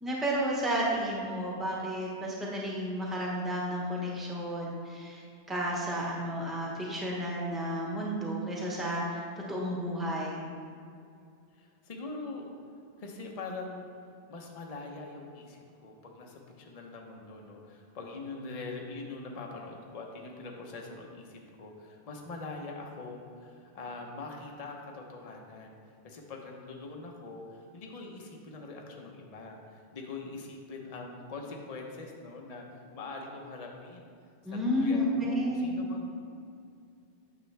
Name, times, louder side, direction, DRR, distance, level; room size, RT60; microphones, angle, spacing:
voice 1, 0.0-9.2 9.5-10.4 34.4-35.8, equal, ahead, -3 dB, 1.1 m, -32 dB
voice 2, 11.6-12.5 13.0-13.9 14.3-25.8 26.0-34.1 34.5-36.2, left 3 dB, 35° left, 0 dB, 0.9 m, -43 dB
9.4 x 6.7 x 3.3 m, 2.4 s
omnidirectional pair, 1.1 m